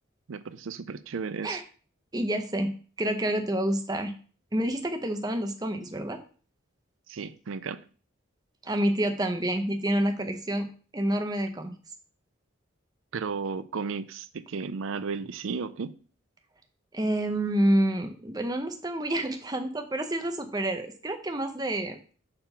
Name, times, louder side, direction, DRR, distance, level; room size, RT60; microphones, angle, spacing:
voice 1, 0.3-1.6 7.1-7.8 13.1-15.9, right 5 dB, 75° right, 0.5 m, -34 dB
voice 2, 2.1-2.7 3.0-4.1 4.5-6.2 8.6-10.7 10.9-11.7 16.9-22.0, right 1 dB, 20° right, 0.7 m, -28 dB
6.9 x 3.7 x 5.7 m
head